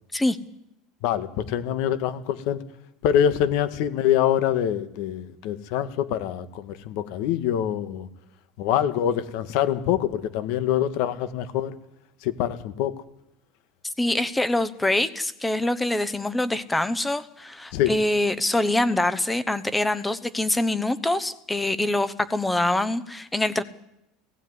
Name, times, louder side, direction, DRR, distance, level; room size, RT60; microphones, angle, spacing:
voice 1, 1.0-2.6 3.0-8.1 8.6-11.7 12.2-12.9 17.7-17.9, left 10 dB, 65° left, 12 dB, 1.6 m, -25 dB
voice 2, 13.8-23.6, left 1 dB, 10° left, 14 dB, 1.0 m, -24 dB
17.0 x 16.0 x 9.6 m, 0.82 s
supercardioid pair, 135°, 0 cm